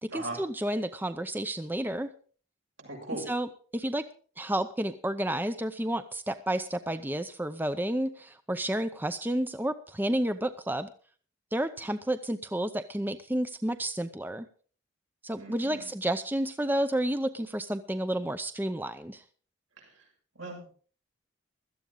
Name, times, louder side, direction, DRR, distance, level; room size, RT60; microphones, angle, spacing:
voice 1, 0.0-2.1 3.3-4.1 4.4-10.9 11.5-14.5 15.2-19.2, right 1 dB, 10° right, 10 dB, 0.6 m, -31 dB
voice 2, 2.8-3.2 15.4-15.9 20.4-20.7, right 2 dB, 85° right, 0 dB, 6.8 m, -39 dB
16.5 x 13.0 x 3.8 m, 0.41 s
head